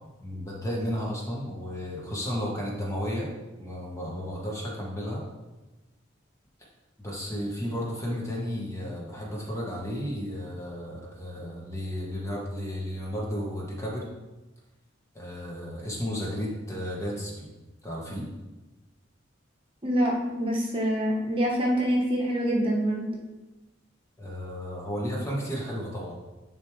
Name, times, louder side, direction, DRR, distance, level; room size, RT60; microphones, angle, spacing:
voice 1, 0.2-3.3 3.6-5.2 7.0-14.1 15.1-17.5 17.8-18.3 24.2-26.1, equal, 15° left, -4 dB, 1.3 m, -33 dB
voice 2, 19.8-23.1, equal, 30° right, -3 dB, 1.2 m, -25 dB
10.0 x 3.5 x 3.2 m, 1.1 s
head